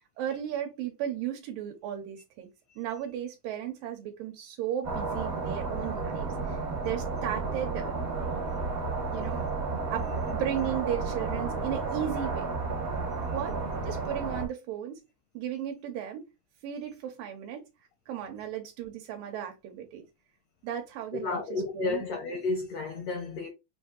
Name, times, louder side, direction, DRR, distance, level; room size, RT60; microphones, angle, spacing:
voice 1, 0.2-2.5 2.8-8.6 9.1-9.5 9.9-12.5 13.3-13.6 13.8-15.0 15.3-16.3 16.6-17.6 18.1-20.0 20.6-22.0, right 10 dB, 80° right, 2.4 m, -35 dB
sound 1, 4.8-14.5, right 3 dB, 55° right, 0.9 m, -32 dB
voice 2, 21.1-23.5, left 3 dB, 80° left, 1.4 m, -32 dB
6.1 x 2.7 x 2.4 m
omnidirectional pair, 3.9 m